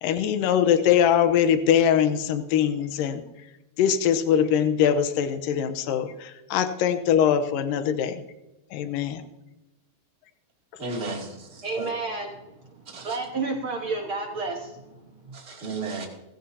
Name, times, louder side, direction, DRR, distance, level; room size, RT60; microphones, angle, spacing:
voice 1, 0.0-3.2 3.8-8.2 8.7-9.2, left 9 dB, 80° left, 9 dB, 2.5 m, -22 dB
voice 2, 10.8-11.9 12.9-13.2 15.3-16.1, right 3 dB, 20° right, -1 dB, 2.5 m, -34 dB
voice 3, 11.6-12.3 12.7-15.0 15.3-15.4, right 3 dB, 50° right, 1 dB, 1.8 m, -31 dB
20.0 x 16.0 x 2.8 m, 0.99 s
omnidirectional pair, 4.0 m